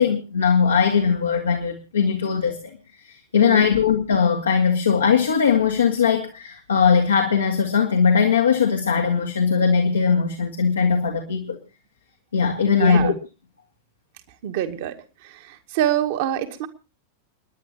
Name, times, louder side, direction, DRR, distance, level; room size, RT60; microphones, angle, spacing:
voice 1, 0.0-2.7 3.0-11.6 12.3-13.1, left 6 dB, 70° left, 2 dB, 2.0 m, -20 dB
voice 2, 3.3-3.7 12.6-13.1 14.4-16.7, right 11 dB, 50° right, 6 dB, 2.1 m, -26 dB
30.0 x 10.5 x 2.9 m, 0.32 s
figure-of-eight pair, 90°, 0 cm